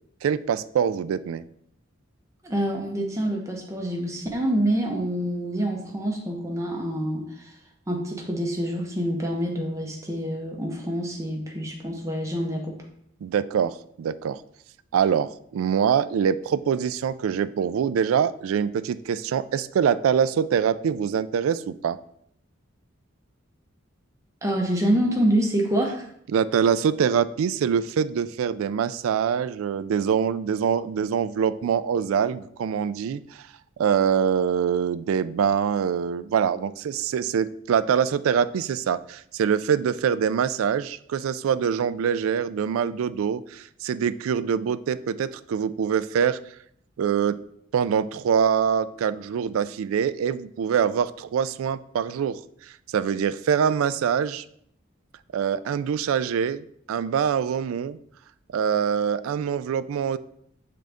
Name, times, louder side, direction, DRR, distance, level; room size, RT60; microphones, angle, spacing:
voice 1, 0.2-1.4 13.2-14.4 14.9-22.0 26.3-33.5 33.8-46.4 47.0-47.4 47.7-52.4 52.9-54.4 55.3-58.0 58.5-60.2, right 7 dB, 85° right, 15 dB, 0.3 m, -24 dB
voice 2, 2.4-7.5 7.9-12.7 24.4-26.1, right 1 dB, 15° right, 0 dB, 0.9 m, -26 dB
7.5 x 3.8 x 3.5 m, 0.69 s
head